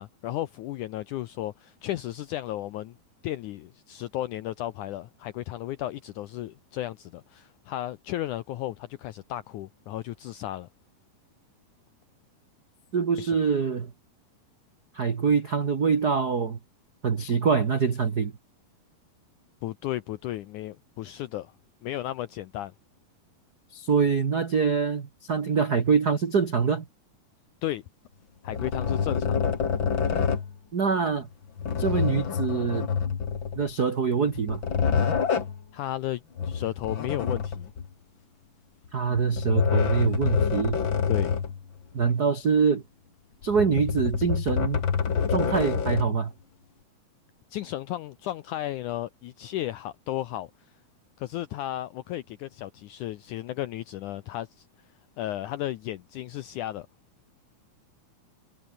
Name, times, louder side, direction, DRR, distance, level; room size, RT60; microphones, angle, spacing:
voice 1, 0.0-3.0 3.2-10.7 13.2-13.4 19.6-21.5 21.8-22.7 27.6-27.8 28.4-29.6 35.7-37.7 41.1-41.3 47.5-50.5 51.2-54.7 55.2-56.9, left 14 dB, 80° left, 1.8 m, -34 dB
voice 2, 12.9-13.9 14.9-16.6 17.0-18.3 23.7-26.8 30.7-31.3 31.8-32.9 33.6-34.6 38.9-40.8 41.9-42.8 43.4-44.8 45.3-46.3, right 6 dB, 80° right, 0.8 m, -24 dB
sound 1, 28.5-30.5 31.6-33.7 34.3-35.6 36.4-37.9 39.1-41.6 42.0-42.1 43.4-46.2, left 6 dB, 40° left, 2.2 m, -27 dB
omnidirectional pair, 4.4 m